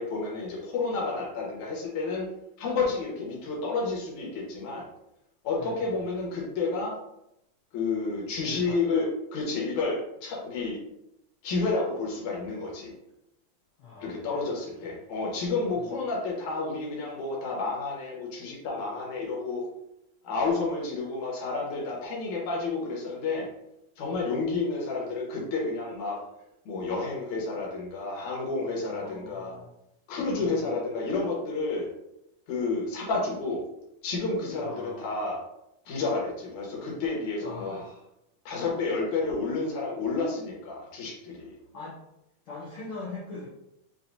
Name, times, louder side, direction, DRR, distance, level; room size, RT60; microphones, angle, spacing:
voice 1, 0.0-2.3 2.6-4.9 5.4-7.0 7.7-10.8 11.4-12.9 14.0-19.6 20.2-23.5 24.0-26.2 26.7-29.5 30.1-31.9 32.5-33.6 34.0-35.4 35.9-37.8 38.5-41.6, left 3 dB, 65° left, -3 dB, 2.3 m, -30 dB
voice 2, 5.5-6.1 8.4-8.8 13.8-14.5 14.8-15.0 15.7-15.9 28.8-29.7 30.3-30.8 34.6-35.0 37.4-38.1 41.7-42.0 42.4-43.5, left 3 dB, 90° left, -7 dB, 1.1 m, -42 dB
6.0 x 2.8 x 2.7 m, 0.82 s
omnidirectional pair, 3.9 m